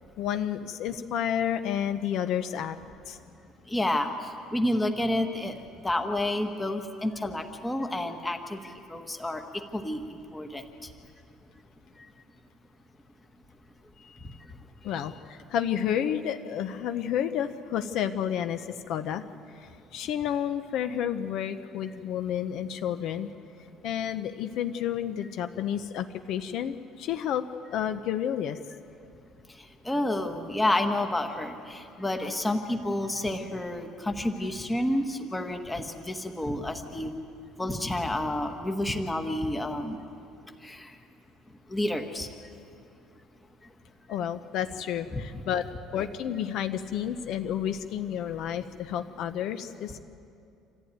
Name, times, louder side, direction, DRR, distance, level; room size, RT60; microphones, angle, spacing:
voice 1, 0.2-2.8 3.1-3.2 14.0-14.4 14.8-19.2 19.5-23.3 23.8-27.4 27.7-28.6 44.1-45.7 45.9-50.0, left 9 dB, 50° left, 9 dB, 0.8 m, -30 dB
voice 2, 3.7-4.1 4.5-5.5 5.8-8.6 8.9-9.4 9.7-10.0 10.3-10.6 29.8-37.1 37.6-40.0 40.6-40.9 41.7-42.3 45.1-45.2, left 1 dB, 5° left, 5 dB, 1.2 m, -29 dB
26.5 x 14.5 x 9.5 m, 2.5 s
cardioid pair, 180°, 0 cm